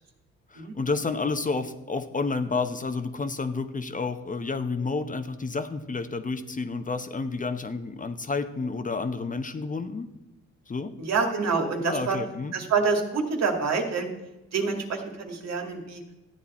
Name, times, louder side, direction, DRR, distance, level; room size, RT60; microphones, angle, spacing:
voice 1, 0.5-10.1 10.7-10.9 11.8-12.5, left 4 dB, 25° left, 8 dB, 0.9 m, -30 dB
voice 2, 11.0-12.2 12.5-14.1 14.5-16.0, right 4 dB, 60° right, 3 dB, 2.2 m, -27 dB
13.5 x 8.9 x 4.3 m, 1.0 s
cardioid pair, 90°, 30 cm